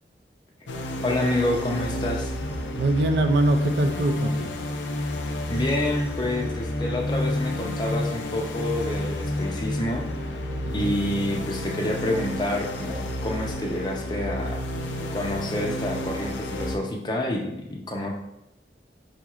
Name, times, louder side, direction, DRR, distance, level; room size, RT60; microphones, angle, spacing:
sound 1, 0.7-16.8, left 1 dB, 90° left, 0.5 m, -30 dB
voice 1, 1.0-2.3 5.5-10.1 10.7-14.6 15.1-18.1, left 1 dB, 25° left, 1 dB, 0.5 m, -28 dB
voice 2, 2.8-4.5 10.6-10.9, right 2 dB, 70° right, 6 dB, 0.4 m, -24 dB
4.8 x 2.9 x 2.4 m, 0.84 s
head